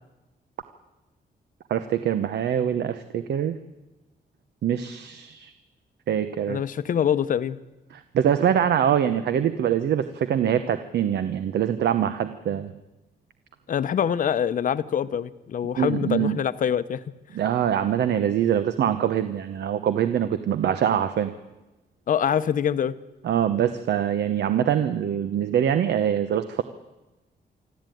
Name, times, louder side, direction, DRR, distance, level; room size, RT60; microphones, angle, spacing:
voice 1, 1.7-3.6 4.6-5.5 6.1-6.6 7.9-12.7 15.8-16.4 17.3-21.3 23.2-26.6, right 9 dB, 80° right, 11 dB, 1.0 m, -24 dB
voice 2, 6.5-7.6 13.7-17.0 22.1-23.0, left 8 dB, 50° left, 13 dB, 0.8 m, -24 dB
25.5 x 13.5 x 9.3 m, 1.1 s
wide cardioid pair, 175°, 17 cm